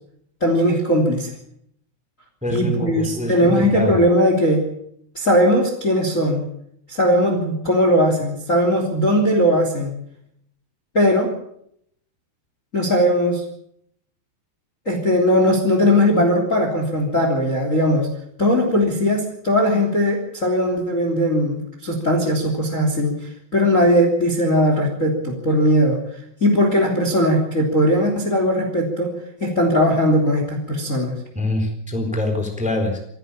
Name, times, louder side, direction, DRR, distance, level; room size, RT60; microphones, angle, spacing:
voice 1, 0.4-1.3 2.5-4.6 5.1-6.4 6.9-9.9 10.9-11.3 12.7-13.4 14.8-18.1 18.4-23.1 23.5-26.0 26.4-29.1 29.4-31.1, equal, 20° left, 3 dB, 3.1 m, -19 dB
voice 2, 2.4-4.0 31.3-33.0, left 1 dB, ahead, 4 dB, 3.4 m, -24 dB
27.0 x 11.0 x 8.7 m, 0.72 s
omnidirectional pair, 4.7 m